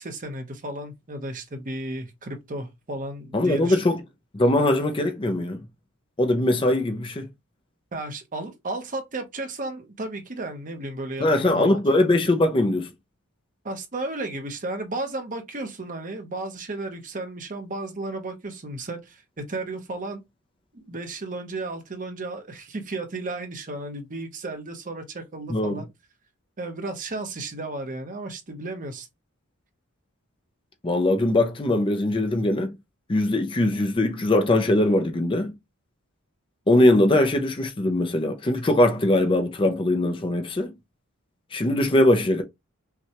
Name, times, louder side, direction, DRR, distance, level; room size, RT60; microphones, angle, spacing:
voice 1, 0.0-3.8 7.9-11.8 13.6-20.2 20.7-25.9 26.6-29.1, right 2 dB, 35° right, 0.8 m, -34 dB
voice 2, 3.3-4.0 4.3-5.6 6.2-7.3 11.2-12.9 25.5-25.8 30.8-32.8 33.1-35.5 36.7-40.7 41.5-42.4, left 1 dB, 25° left, 0.5 m, -21 dB
5.7 x 2.3 x 2.9 m
head